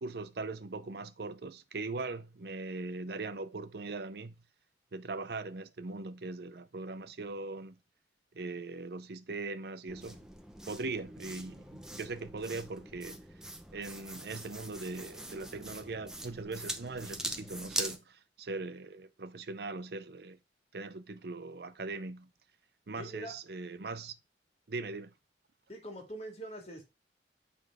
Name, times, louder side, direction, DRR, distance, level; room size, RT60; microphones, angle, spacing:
voice 1, 0.0-4.4 4.9-7.8 8.3-10.3 10.7-13.2 13.7-20.4 20.7-22.3 22.9-24.2 24.7-25.1, right 3 dB, 60° right, 0.6 m, -40 dB
sound 1, 9.9-18.0, right 1 dB, 5° right, 0.6 m, -42 dB
voice 2, 23.0-23.3 25.7-26.9, right 1 dB, 35° left, 2.1 m, -43 dB
8.2 x 3.4 x 4.7 m
head